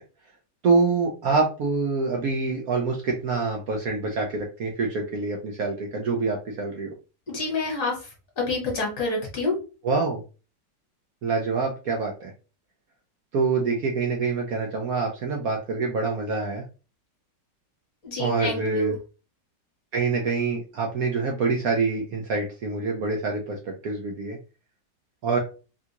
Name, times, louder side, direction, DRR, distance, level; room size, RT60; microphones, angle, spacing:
voice 1, 0.6-6.9 9.8-10.2 11.2-12.3 13.3-16.6 18.2-18.9 19.9-24.4 25.2-25.4, right 4 dB, 65° right, 0 dB, 0.9 m, -26 dB
voice 2, 7.3-8.0 8.4-9.5 18.0-18.9, left 2 dB, 50° left, -1 dB, 1.5 m, -27 dB
3.7 x 2.3 x 2.8 m, 0.33 s
omnidirectional pair, 2.0 m